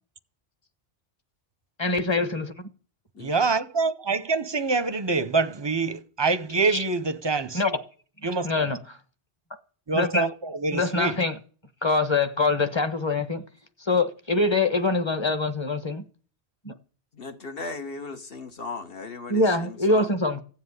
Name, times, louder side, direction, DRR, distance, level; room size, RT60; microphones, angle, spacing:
voice 1, 1.8-2.7 6.6-6.8 7.5-7.9 8.2-9.0 9.9-10.3 10.7-11.4 11.8-13.4 13.8-16.0 16.6-16.7 19.3-20.4, left 3 dB, 25° left, 1.2 m, -24 dB
voice 2, 3.2-7.6 8.2-8.5 9.9-10.3 10.6-11.2, right 4 dB, 25° right, 0.7 m, -25 dB
voice 3, 17.1-20.2, left 3 dB, 60° left, 1.6 m, -37 dB
15.5 x 7.8 x 9.7 m
omnidirectional pair, 1.1 m